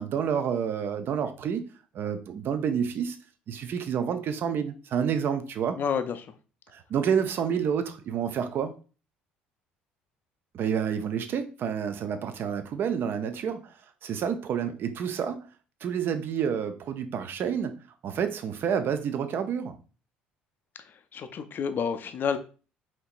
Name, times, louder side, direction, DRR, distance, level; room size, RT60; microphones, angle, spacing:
voice 1, 0.0-1.6 1.9-3.2 3.5-5.8 6.7-8.7 10.5-13.7 14.0-15.5 15.8-17.7 18.0-19.8, right 7 dB, 45° right, 9 dB, 0.5 m, -29 dB
voice 2, 5.7-6.3 20.8-22.4, left 6 dB, 40° left, 9 dB, 0.4 m, -30 dB
4.4 x 2.8 x 2.5 m, 0.36 s
figure-of-eight pair, 55°, 5 cm